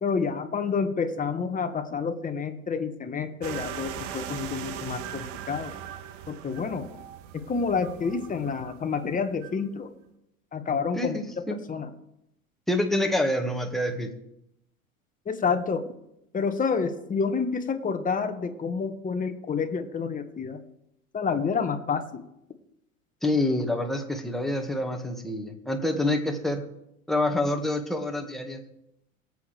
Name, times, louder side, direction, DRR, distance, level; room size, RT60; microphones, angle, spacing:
voice 1, 0.0-5.7 6.3-6.9 7.3-9.9 10.5-11.2 11.7-11.9 15.3-15.9 16.3-20.6 21.1-22.2, left 5 dB, 20° left, 7 dB, 1.4 m, -29 dB
sound 1, 3.4-9.6, right 10 dB, 60° right, 1.2 m, -39 dB
voice 2, 10.9-11.6 12.7-14.1 23.2-26.6 27.1-28.6, left 1 dB, ahead, 3 dB, 1.8 m, -27 dB
23.0 x 8.2 x 3.4 m, 0.82 s
hypercardioid pair, 90°, 42 cm